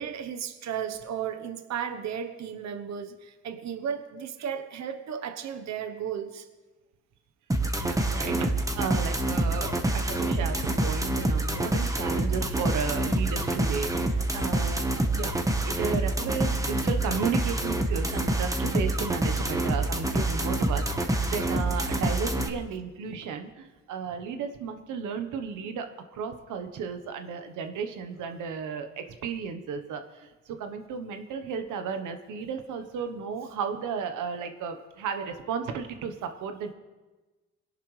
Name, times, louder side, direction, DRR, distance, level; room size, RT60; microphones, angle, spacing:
voice 1, 0.0-6.5, right 8 dB, 65° right, 8 dB, 1.1 m, -34 dB
sound 1, 7.5-22.5, right 1 dB, 10° right, 1.2 m, -27 dB
voice 2, 7.8-15.3 15.6-36.7, right 6 dB, 85° right, 7 dB, 1.2 m, -34 dB
21.5 x 11.0 x 3.3 m, 1.2 s
cardioid pair, 90°, 30 cm